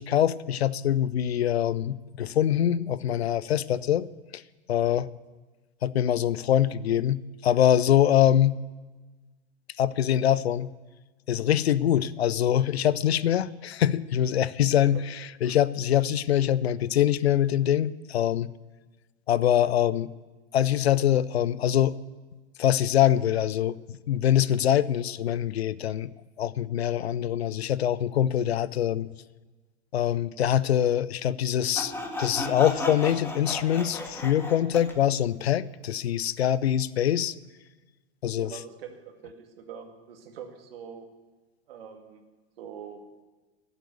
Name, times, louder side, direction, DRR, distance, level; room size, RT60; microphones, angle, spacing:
voice 1, 0.0-4.1 4.3-4.4 4.7-5.1 5.8-8.6 9.8-10.7 11.3-15.0 15.4-18.5 19.3-20.1 20.5-21.9 22.6-26.1 26.4-29.1 29.9-31.9 32.2-37.3 38.2-38.5, left 11 dB, 70° left, 20 dB, 0.6 m, -24 dB
Sawing, 31.8-35.0, left 1 dB, 5° left, 1.8 m, -34 dB
voice 2, 38.4-41.1 41.7-42.2 42.6-43.0, right 7 dB, 60° right, 5 dB, 2.1 m, -43 dB
14.0 x 8.2 x 9.3 m, 1.3 s
figure-of-eight pair, 95°, 33 cm